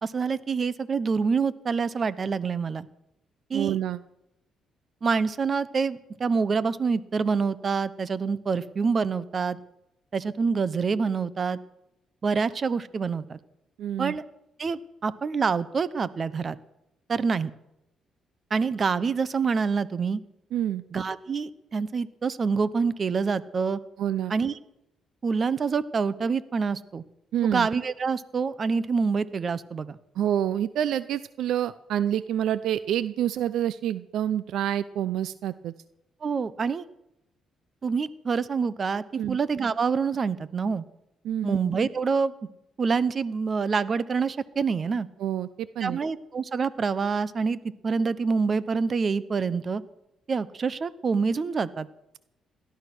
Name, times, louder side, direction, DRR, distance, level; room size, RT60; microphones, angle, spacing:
voice 1, 0.0-2.9 3.5-3.8 5.0-9.6 10.1-11.6 12.2-13.4 14.0-14.2 14.6-16.6 17.1-17.5 18.5-20.2 20.9-23.8 24.3-24.5 25.2-27.0 27.4-30.0 36.2-36.9 37.8-40.8 41.4-42.3 42.8-45.1 45.8-49.8 50.3-51.9, right 5 dB, 40° right, 17 dB, 0.9 m, -26 dB
voice 2, 3.5-4.0 13.8-14.2 20.5-20.8 24.0-24.3 27.3-27.7 30.1-35.7 39.2-39.4 41.2-41.6 45.2-46.0, right 10 dB, 80° right, 16 dB, 0.5 m, -27 dB
18.0 x 12.5 x 6.2 m, 0.85 s
cardioid pair, 90°, 0 cm